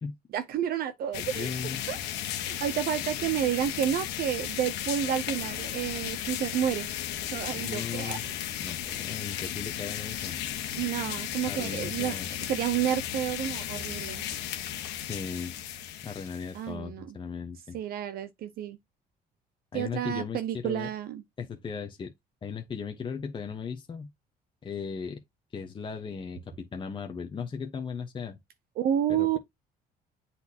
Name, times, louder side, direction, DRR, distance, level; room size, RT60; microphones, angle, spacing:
voice 1, 0.3-1.5 1.9-2.0 2.4-6.9 7.3-8.4 10.8-12.2 12.5-14.3 16.5-17.1 17.7-18.8 19.7-21.2 28.8-29.4, right 10 dB, 65° right, 0.6 m, -30 dB
sound 1, 1.1-16.7, left 11 dB, 85° left, 1.3 m, -35 dB
voice 2, 1.2-1.8 7.5-8.3 8.6-10.4 11.5-12.3 15.1-15.5 16.0-17.8 19.7-20.9 21.4-22.1 22.4-24.1 24.6-25.2 25.5-28.4 29.1-29.4, left 6 dB, 30° left, 1.0 m, -37 dB
7.9 x 4.3 x 2.8 m
cardioid pair, 110°, 17 cm